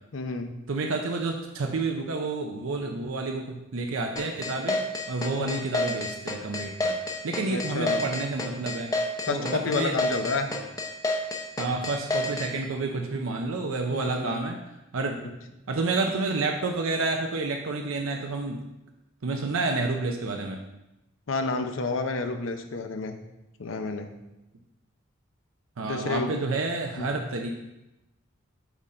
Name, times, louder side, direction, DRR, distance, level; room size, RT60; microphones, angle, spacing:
voice 1, 0.1-0.5 5.4-5.7 7.5-8.0 9.2-10.5 13.9-14.4 21.3-23.2 23.6-24.1 25.8-26.3 27.0-27.1, left 3 dB, 70° left, 7 dB, 0.7 m, -30 dB
voice 2, 0.7-6.9 7.2-8.9 9.3-9.9 11.6-14.6 14.9-15.2 15.7-18.6 19.2-20.6 25.8-27.5, right 3 dB, 85° right, 2 dB, 0.6 m, -29 dB
sound 1, 4.2-12.5, left 2 dB, 20° left, 0.7 m, -29 dB
8.0 x 3.8 x 4.2 m, 0.96 s
head